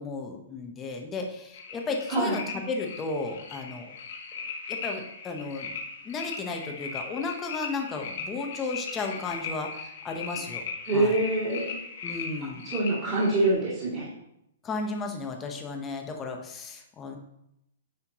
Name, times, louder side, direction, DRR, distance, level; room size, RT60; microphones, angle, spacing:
voice 1, 0.0-2.4 2.7-3.9 4.7-5.8 6.0-10.6 10.9-11.2 12.0-12.6 14.6-17.2, left 3 dB, 15° left, 3 dB, 0.8 m, -34 dB
sound 1, 1.5-13.5, left 5 dB, 60° left, 1.5 m, -38 dB
voice 2, 10.9-11.7 12.6-14.1, right 2 dB, 30° right, -10 dB, 2.3 m, -25 dB
9.7 x 4.3 x 2.9 m, 0.81 s
hypercardioid pair, 165°, 0 cm